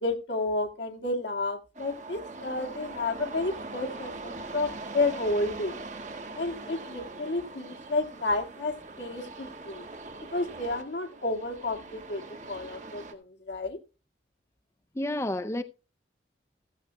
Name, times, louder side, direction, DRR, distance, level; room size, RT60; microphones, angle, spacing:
voice 1, 0.0-5.8 6.4-9.8 10.3-13.8, left 2 dB, 75° left, 1.9 m, -31 dB
sound 1, 1.7-13.1, right 3 dB, 40° right, 1.7 m, -42 dB
voice 2, 15.0-15.6, left 1 dB, 15° left, 0.5 m, -30 dB
15.0 x 14.5 x 2.2 m
head